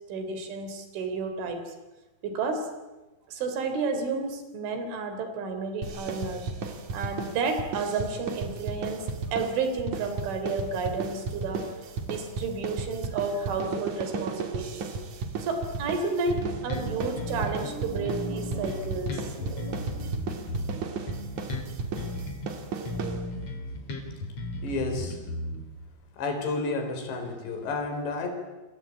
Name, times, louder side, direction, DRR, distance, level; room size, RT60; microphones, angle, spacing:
voice 1, 0.1-1.7 2.2-2.7 3.3-6.5 6.9-11.7 12.1-14.9 15.4-20.4, right 4 dB, 90° right, 8 dB, 6.0 m, -31 dB
sound 1, 5.8-23.6, right 4 dB, 45° right, 3.2 m, -35 dB
Bass guitar, 16.3-17.7 18.0-22.5 22.8-25.9, left 1 dB, 35° left, 4.0 m, -36 dB
voice 2, 24.6-25.2 26.2-28.3, left 3 dB, 70° left, 6 dB, 6.3 m, -31 dB
28.5 x 23.0 x 8.7 m, 1.1 s
omnidirectional pair, 5.3 m